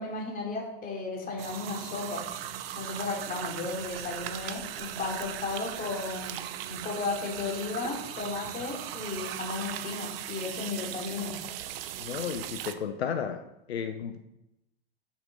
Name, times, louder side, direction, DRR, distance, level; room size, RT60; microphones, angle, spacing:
voice 1, 0.0-2.3 2.7-6.4 6.7-11.4, left 3 dB, 30° left, 0 dB, 3.1 m, -34 dB
sound 1, 1.4-12.7, right 11 dB, 65° right, 0.8 m, -38 dB
voice 2, 12.0-13.4 13.7-14.2, left 7 dB, 90° left, 8 dB, 0.8 m, -33 dB
7.7 x 7.1 x 5.3 m, 0.87 s
hypercardioid pair, 105°, 31 cm